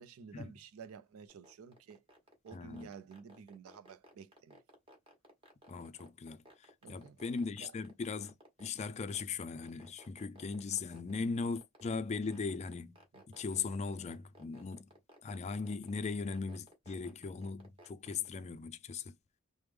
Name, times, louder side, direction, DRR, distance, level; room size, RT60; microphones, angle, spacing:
voice 1, 0.0-2.0 2.4-4.6 6.8-7.2 7.6-7.7 13.1-13.4, right 6 dB, 90° right, 0.4 m, -52 dB
sound 1, 1.3-18.3, equal, 25° right, 1.2 m, -58 dB
voice 2, 2.5-2.9 5.7-8.3 8.6-13.0 13.3-14.9 15.2-19.1, left 4 dB, 30° left, 0.3 m, -39 dB
3.4 x 2.0 x 3.1 m
head